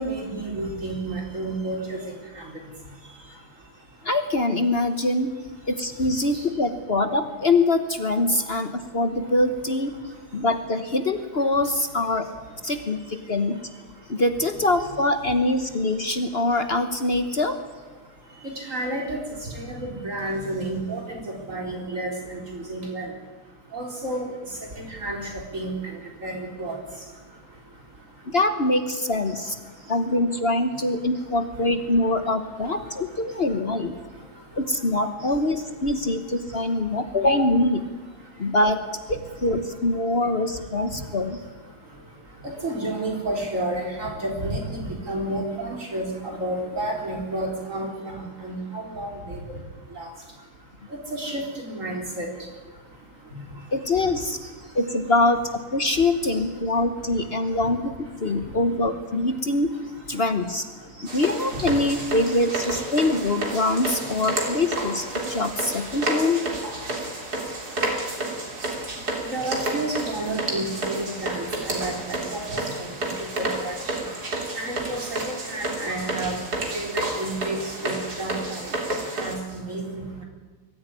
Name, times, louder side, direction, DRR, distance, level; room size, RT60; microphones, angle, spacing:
voice 1, 0.0-2.0 18.7-19.2 19.5-21.2 21.5-23.1 23.7-24.3 24.8-25.2 25.5-25.7 26.2-26.8 42.6-49.6 50.0-50.1 51.1-52.3 69.3-72.9 73.4-73.7 74.6-76.4 76.7-78.6 79.2-80.2, right 1 dB, 55° right, 1 dB, 4.5 m, -30 dB
voice 2, 4.0-5.4 5.7-9.9 10.3-12.3 12.6-13.7 14.1-17.6 28.3-29.6 29.9-33.9 34.5-37.8 38.4-38.8 39.1-41.4 53.7-54.4 54.7-59.7 60.1-60.6 61.1-66.4, left 2 dB, 40° left, 8 dB, 1.3 m, -24 dB
sound 1, 61.1-79.3, right 2 dB, 80° right, 3.9 m, -30 dB
22.5 x 14.5 x 9.8 m, 1.3 s
omnidirectional pair, 1.7 m